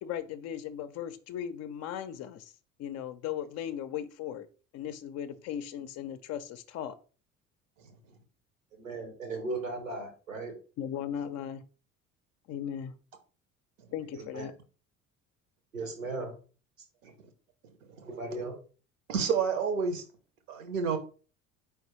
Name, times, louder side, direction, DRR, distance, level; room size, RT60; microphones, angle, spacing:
voice 1, 0.0-2.5 2.8-4.5 4.7-7.0 10.8-11.6 12.5-13.0 13.9-14.5, left 9 dB, 40° left, 11 dB, 0.5 m, -37 dB
voice 2, 8.7-10.5 14.1-14.5 15.7-16.3 18.0-18.5, right 3 dB, 85° right, 4 dB, 1.2 m, -37 dB
voice 3, 19.1-20.0 20.5-21.0, right 6 dB, 70° right, 8 dB, 1.0 m, -29 dB
4.5 x 3.4 x 3.0 m, 0.37 s
figure-of-eight pair, 60°, 39 cm